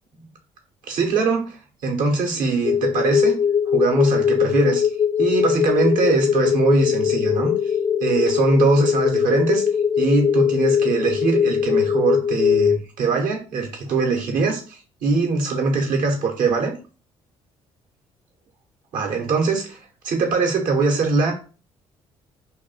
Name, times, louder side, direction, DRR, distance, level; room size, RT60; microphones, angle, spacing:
voice 1, 0.9-3.3 3.7-4.8 5.2-7.7 8.0-9.6 10.0-16.7 18.9-21.3, right 4 dB, 60° right, 2 dB, 1.2 m, -22 dB
sound 1, 2.6-12.8, left 7 dB, 25° left, 0.4 m, -20 dB
2.9 x 2.5 x 4.1 m, 0.35 s
hypercardioid pair, 50°, 16 cm